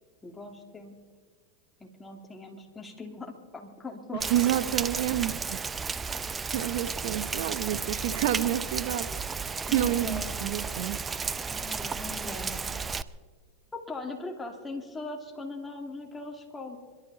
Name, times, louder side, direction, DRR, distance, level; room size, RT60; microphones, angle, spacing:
voice 1, 0.2-1.0 1.8-4.6 9.7-10.6 11.5-12.9 13.7-16.8, left 3 dB, 15° left, 2 dB, 2.7 m, -40 dB
voice 2, 4.1-5.6 6.5-9.1 9.3-11.0, right 13 dB, 70° right, 12 dB, 1.0 m, -29 dB
Rain, 4.2-13.0, right 5 dB, 20° right, 0.5 m, -33 dB
26.5 x 12.5 x 4.2 m, 1.5 s
hypercardioid pair, 110°, 0 cm